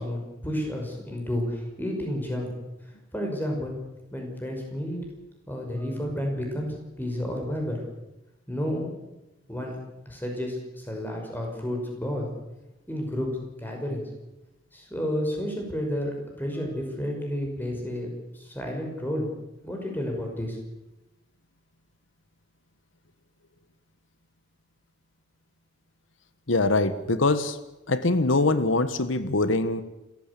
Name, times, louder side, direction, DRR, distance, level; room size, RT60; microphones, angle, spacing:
voice 1, 0.0-2.5 3.1-3.8 4.1-5.0 5.5-7.8 8.5-8.9 9.5-9.7 10.1-12.3 12.9-14.0 14.7-19.3 19.6-20.6, equal, 10° left, 1 dB, 5.9 m, -31 dB
voice 2, 26.5-27.6 27.9-29.8, left 2 dB, 80° left, 12 dB, 1.4 m, -23 dB
27.5 x 15.0 x 8.5 m, 0.99 s
head